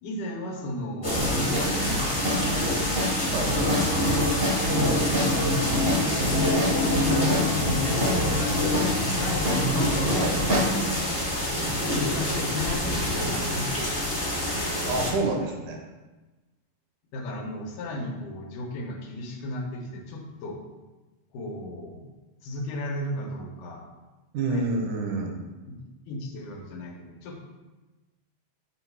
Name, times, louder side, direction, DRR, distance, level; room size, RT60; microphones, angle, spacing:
voice 1, 0.0-3.1 4.8-5.2 5.4-5.9 6.3-10.4 11.9-14.4 17.1-20.6 21.3-22.0 22.4-23.8 24.5-24.7 25.7-25.8 26.1-27.4, left 1 dB, 80° left, 1 dB, 2.3 m, -34 dB
sound 1, 1.0-15.1, left 1 dB, 20° left, 0.6 m, -26 dB
sound 2, 1.2-10.8, equal, 55° right, 0.6 m, -28 dB
voice 2, 14.8-15.8 24.3-25.4, right 3 dB, 80° right, 2 dB, 2.3 m, -28 dB
7.3 x 3.1 x 4.6 m, 1.2 s
omnidirectional pair, 3.6 m